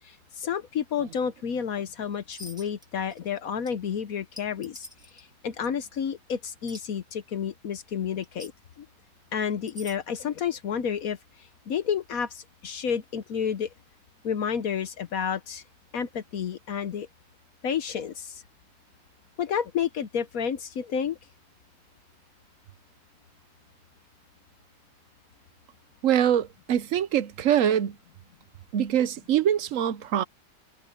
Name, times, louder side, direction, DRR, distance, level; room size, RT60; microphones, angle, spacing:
voice 1, 0.4-4.9 5.4-8.5 8.8-8.9 9.3-11.2 11.7-13.7 14.2-15.6 15.9-17.1 17.6-18.3 19.4-21.2, left 7 dB, 60° left, 1.1 m, -30 dB
sound 1, 2.3-2.9 3.1-3.4 3.7-3.8 4.4-5.2 5.6-5.7 6.7-6.8 8.2-8.5 9.5-10.0, equal, ahead, 1.6 m, -44 dB
voice 2, 26.0-28.0 28.7-30.2, right 10 dB, 60° right, 0.9 m, -24 dB
omnidirectional pair, 1.9 m